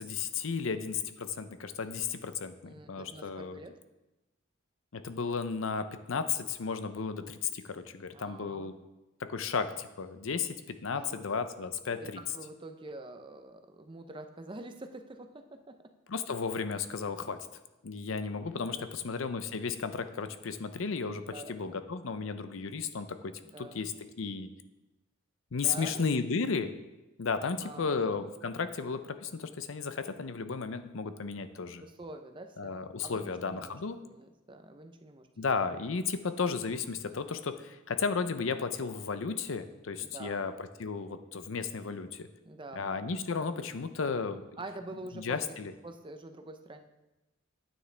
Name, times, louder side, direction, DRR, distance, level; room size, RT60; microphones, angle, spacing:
voice 1, 0.0-3.6 4.9-8.8 9.2-12.2 16.1-17.4 17.8-23.9 24.2-24.5 25.5-26.7 27.2-31.8 32.6-34.0 35.4-42.3 42.7-44.4 45.2-45.7, left 5 dB, 70° left, 10 dB, 0.6 m, -34 dB
voice 2, 2.6-3.8 8.1-8.7 10.9-11.2 12.0-15.9 18.5-19.0 21.3-21.8 23.4-23.9 25.6-26.0 27.4-28.2 31.8-33.8 34.0-35.3 40.0-40.4 42.4-43.1 44.6-45.6 45.8-46.8, right 2 dB, 25° right, 7 dB, 0.6 m, -46 dB
9.6 x 9.1 x 3.3 m, 1.0 s
head